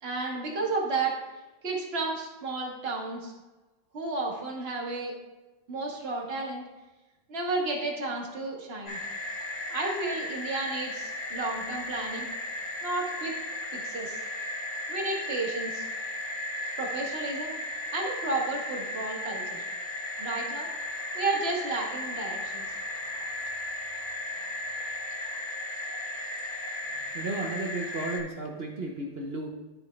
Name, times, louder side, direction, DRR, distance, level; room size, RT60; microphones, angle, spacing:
voice 1, 0.0-1.1 1.6-3.3 3.9-5.1 5.7-6.6 7.3-9.0 9.7-12.3 12.8-13.3 13.7-14.2 14.9-15.9 16.8-17.5 17.9-19.7 20.2-20.7 21.1-22.6, right 3 dB, 35° right, -1 dB, 1.7 m, -32 dB
sound 1, 8.8-28.2, left 1 dB, 30° left, 1.5 m, -35 dB
voice 2, 27.1-29.5, right 2 dB, 55° right, 1 dB, 0.7 m, -34 dB
13.5 x 4.8 x 3.2 m, 1.1 s
omnidirectional pair, 2.1 m